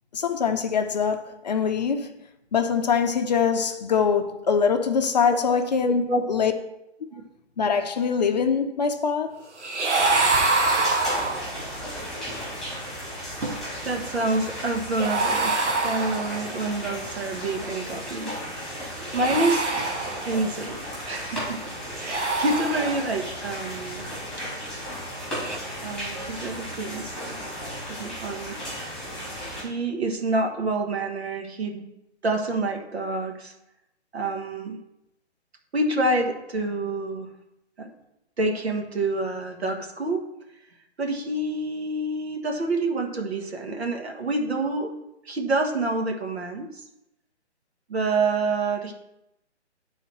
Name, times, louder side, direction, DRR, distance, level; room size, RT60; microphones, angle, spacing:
voice 1, 0.1-2.1 2.5-6.5 7.6-9.3, left 6 dB, 40° left, 0.6 m, -23 dB
voice 2, 5.8-6.5 13.4-13.5 13.8-19.7 20.2-21.6 22.0-24.1 25.8-27.6 28.0-28.6 29.6-31.8 32.2-33.5 34.1-34.8 35.7-37.3 37.8-37.9 38.4-40.2 41.0-44.9 45.2-46.8 47.9-48.9, right 2 dB, 65° right, 1.6 m, -27 dB
sound 1, 9.6-11.7 15.0-16.6 19.0-20.6 21.9-23.3 25.3-25.6, right 3 dB, 85° right, 1.3 m, -25 dB
sound 2, 9.9-29.6, equal, ahead, 2.9 m, -35 dB
10.0 x 4.0 x 4.5 m
figure-of-eight pair, 145°, 34 cm